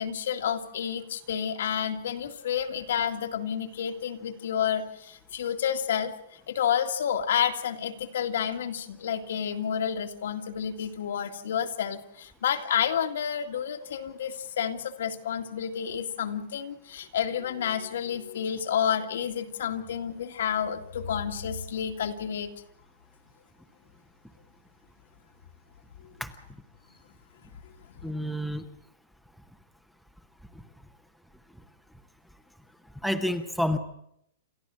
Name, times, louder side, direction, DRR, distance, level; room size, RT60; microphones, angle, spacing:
voice 1, 0.0-6.1 6.5-22.5 26.0-26.1 28.0-28.1, left 8 dB, 70° left, 5 dB, 2.1 m, -30 dB
voice 2, 28.0-28.6 33.0-33.8, left 1 dB, ahead, 8 dB, 0.9 m, -28 dB
28.5 x 13.5 x 7.7 m, 0.76 s
supercardioid pair, 175°, 0 cm